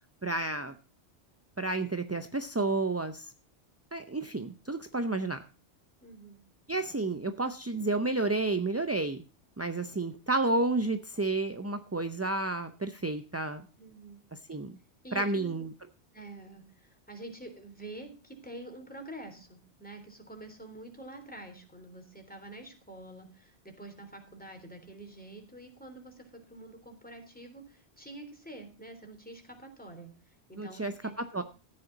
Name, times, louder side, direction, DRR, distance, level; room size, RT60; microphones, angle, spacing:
voice 1, 0.2-0.7 1.6-3.3 3.9-5.4 6.7-9.2 9.6-13.6 14.5-14.7 15.1-15.7 30.6-31.4, right 2 dB, 20° right, 9 dB, 0.4 m, -31 dB
voice 2, 6.0-6.4 13.8-14.2 15.0-15.5 16.1-31.4, right 2 dB, 10° left, 4 dB, 3.4 m, -47 dB
14.0 x 9.8 x 4.0 m, 0.36 s
omnidirectional pair, 1.1 m